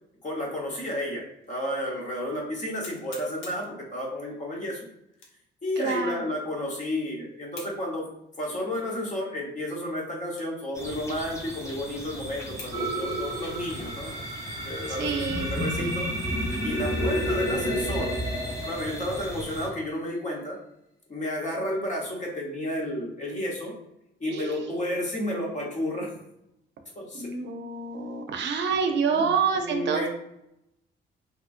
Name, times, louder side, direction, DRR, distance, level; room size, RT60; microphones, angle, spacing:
voice 1, 0.2-4.8 5.6-8.1 8.4-14.1 14.6-18.1 18.6-20.6 21.1-23.7 24.2-26.1 26.9-27.3 29.1-30.1, left 1 dB, 40° left, -2 dB, 1.0 m, -32 dB
sound 1, 1.4-1.5 2.1-2.2 2.8-3.7 5.1-5.5 6.0-6.1 7.5-7.8 8.4-8.6 9.2-9.3 10.3-10.6 11.0-11.1 11.7-11.8 12.6-12.8 13.1-14.6 15.1-15.2 15.7-16.2, left 4 dB, 85° left, 0.7 m, -46 dB
voice 2, 5.8-6.3 15.0-15.5 15.8-15.9 24.3-25.0 27.2-30.1, right 5 dB, 65° right, 5 dB, 0.5 m, -28 dB
sound 2, 10.7-19.7, equal, 15° left, 0.7 m, -40 dB
sound 3, 12.7-19.8, equal, 25° right, 1.1 m, -30 dB
2.9 x 2.4 x 2.5 m, 0.81 s
cardioid pair, 90°, 20 cm